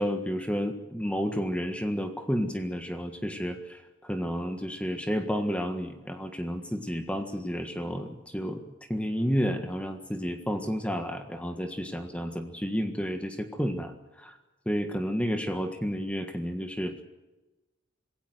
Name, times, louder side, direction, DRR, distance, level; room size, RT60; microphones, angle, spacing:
voice 1, 0.0-8.6 8.9-14.4 14.6-17.0, equal, 5° left, 6 dB, 1.6 m, -31 dB
26.5 x 17.0 x 7.9 m, 1.1 s
head